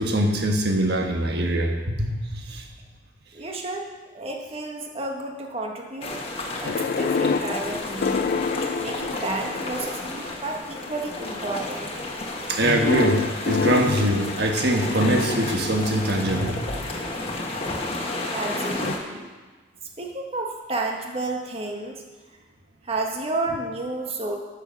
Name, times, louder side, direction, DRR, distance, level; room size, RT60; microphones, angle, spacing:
voice 1, 0.0-2.7 12.5-16.8, right 1 dB, 60° right, 2 dB, 1.4 m, -23 dB
voice 2, 3.3-3.9 4.1-6.2 6.6-8.4 8.8-11.9 18.3-19.3 20.0-22.0 22.8-24.4, right 2 dB, 35° right, 1 dB, 1.5 m, -31 dB
sound 1, 6.0-19.0, left 2 dB, 30° left, 1.4 m, -32 dB
sound 2, 6.6-10.0 10.8-11.2 12.6-16.7 18.8-18.9, left 5 dB, 55° left, 0.3 m, -28 dB
12.0 x 6.9 x 5.4 m, 1.3 s
head